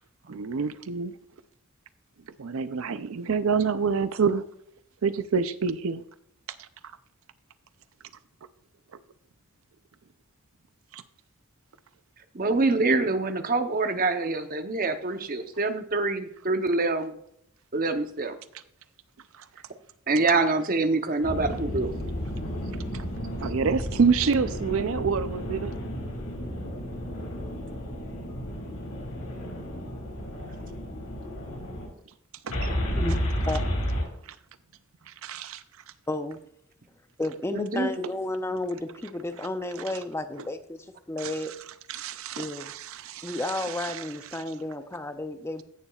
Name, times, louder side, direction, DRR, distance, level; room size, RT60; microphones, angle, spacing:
voice 1, 0.3-1.1 2.4-4.4 5.0-6.0 6.6-6.7 10.9-11.0 19.3-19.5 22.9-23.1 23.4-25.7 32.4-32.7 34.2-34.4 35.1-35.6 41.2-41.4 41.9-44.1 44.3-44.4, right 5 dB, 70° right, 0.5 m, -27 dB
voice 2, 12.3-17.2 17.7-18.4 20.1-21.9 30.5-30.6 37.5-37.9, right 3 dB, 40° right, 0.8 m, -25 dB
sound 1, 21.2-31.9 32.5-34.0, equal, 85° left, 4.1 m, -32 dB
voice 3, 36.1-36.4 37.2-41.5 42.4-42.7 43.2-45.6, left 2 dB, 10° left, 0.4 m, -32 dB
16.0 x 7.0 x 2.4 m
head